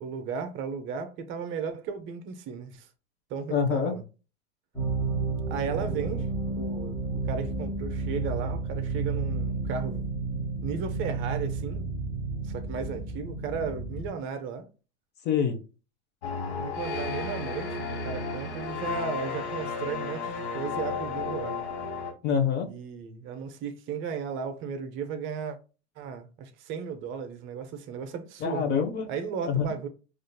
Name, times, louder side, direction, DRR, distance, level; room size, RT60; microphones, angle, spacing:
voice 1, 0.0-2.9 3.3-4.0 5.5-6.3 6.6-7.0 7.3-10.0 10.6-11.9 12.4-14.7 16.5-21.6 22.7-25.6 26.0-28.7 29.1-29.9, right 6 dB, 35° right, 0.6 m, -35 dB
voice 2, 3.5-3.9 15.2-15.6 22.2-22.7 28.4-29.1 29.5-29.7, left 7 dB, 30° left, 0.6 m, -25 dB
sound 1, 4.7-14.1, right 3 dB, 10° left, 1.1 m, -31 dB
sound 2, 16.2-22.1, left 4 dB, 70° left, 1.2 m, -33 dB
5.0 x 2.5 x 2.2 m
hypercardioid pair, 105°, 34 cm